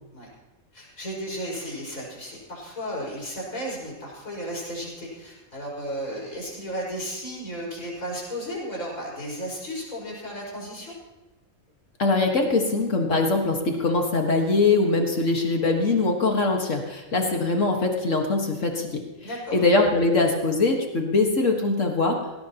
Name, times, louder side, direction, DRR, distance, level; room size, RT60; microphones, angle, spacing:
voice 1, 0.7-10.9 19.2-19.6, equal, 80° left, -4 dB, 5.9 m, -34 dB
voice 2, 12.0-19.0 19.5-22.2, left 3 dB, 65° left, 2 dB, 2.0 m, -22 dB
18.0 x 18.0 x 3.0 m, 1.1 s
omnidirectional pair, 1.4 m